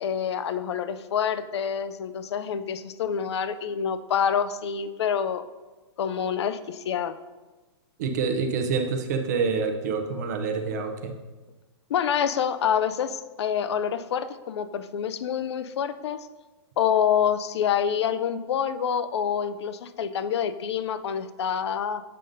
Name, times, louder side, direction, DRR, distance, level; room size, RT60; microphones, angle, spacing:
voice 1, 0.0-5.4 6.0-7.1 11.9-16.2 16.8-22.0, left 8 dB, 70° left, 12 dB, 0.4 m, -27 dB
voice 2, 8.0-11.1, right 5 dB, 40° right, 6 dB, 0.5 m, -27 dB
7.5 x 5.1 x 2.6 m, 1.2 s
hypercardioid pair, 175°, 14 cm